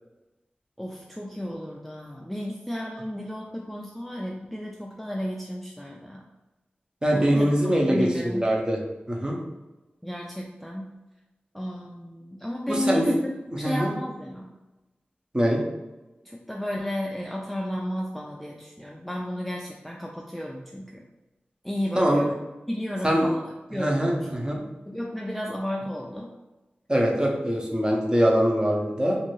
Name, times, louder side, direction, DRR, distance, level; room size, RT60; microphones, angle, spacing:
voice 1, 0.8-6.2 7.1-8.5 10.0-10.9 11.5-14.5 16.2-21.0 21.6-24.3 24.9-26.3, equal, ahead, -1 dB, 0.3 m, -33 dB
voice 2, 7.0-8.8 9.1-9.4 12.7-13.0 13.6-13.9 15.3-15.6 22.0-22.3 23.0-23.3 23.7-24.6 26.9-29.2, equal, 25° right, -1 dB, 0.7 m, -23 dB
2.6 x 2.5 x 3.0 m, 1.0 s
cardioid pair, 45°, 4 cm